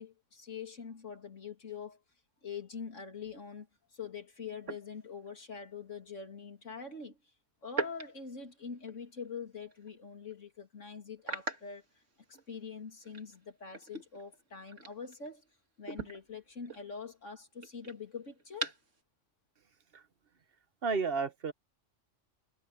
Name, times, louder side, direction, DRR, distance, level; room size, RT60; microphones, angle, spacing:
voice 1, 0.0-2.0 2.4-3.7 3.9-7.2 7.6-11.8 12.5-15.5 15.8-18.7, left 5 dB, 85° left, 3.3 m, -44 dB
sound 1, 3.2-3.4 4.6-5.5 7.7-9.3 9.7-9.9 10.3-10.4 11.2-12.6 13.0-15.5 15.8-19.0, right 3 dB, 75° right, 2.8 m, -43 dB
voice 2, 20.8-21.5, right 4 dB, 50° right, 1.3 m, -32 dB
omnidirectional pair, 1.3 m